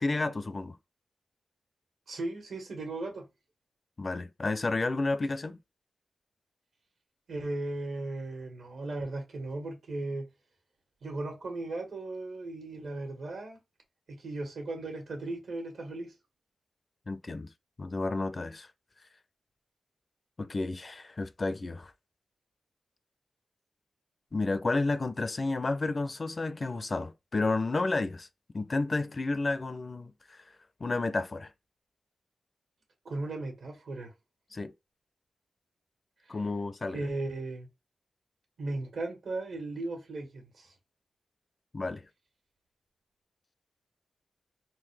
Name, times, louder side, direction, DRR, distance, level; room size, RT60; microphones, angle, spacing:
voice 1, 0.0-0.8 4.0-5.6 17.1-17.5 17.8-18.7 20.4-21.9 24.3-28.3 28.5-30.4 30.8-31.5 34.5-34.7 36.3-37.0 41.7-42.0, left 3 dB, 40° left, 0.4 m, -31 dB
voice 2, 2.1-3.3 7.3-10.3 11.0-13.6 14.1-16.1 33.0-34.1 36.9-37.7 38.6-40.7, right 2 dB, 80° right, 1.5 m, -36 dB
3.8 x 2.4 x 3.3 m
wide cardioid pair, 90°, 0 cm